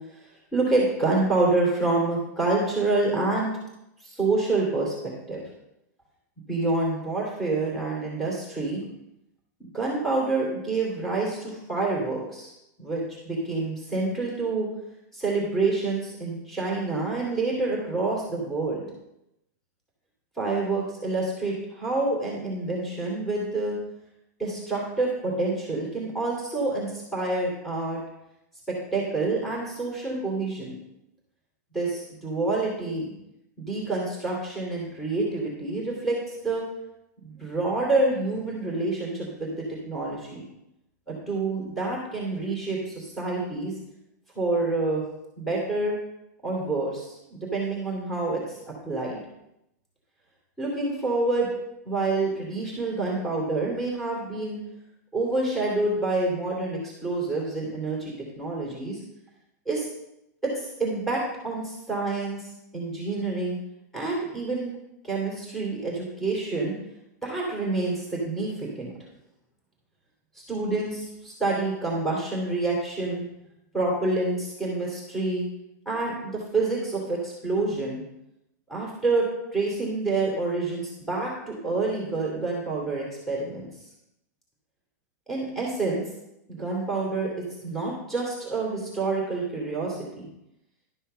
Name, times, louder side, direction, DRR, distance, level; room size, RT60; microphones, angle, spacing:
voice 1, 0.5-3.5 4.0-5.4 6.5-8.8 9.6-12.5 12.8-14.7 15.1-18.8 20.4-23.8 24.4-28.0 28.7-30.8 31.7-33.1 33.6-36.6 37.2-40.4 41.1-43.7 44.3-45.0 45.4-45.9 46.4-49.2 50.6-51.5 51.8-54.6 55.1-59.0 59.7-59.9 60.4-62.5 62.7-63.6 63.9-64.7 65.0-66.8 67.2-68.9 70.4-73.2 73.7-75.4 75.8-78.0 78.7-83.7 85.3-86.0 86.5-87.3 87.6-90.3, right 3 dB, 5° left, -4 dB, 2.9 m, -27 dB
12.0 x 5.6 x 5.6 m, 0.85 s
supercardioid pair, 145°, 9 cm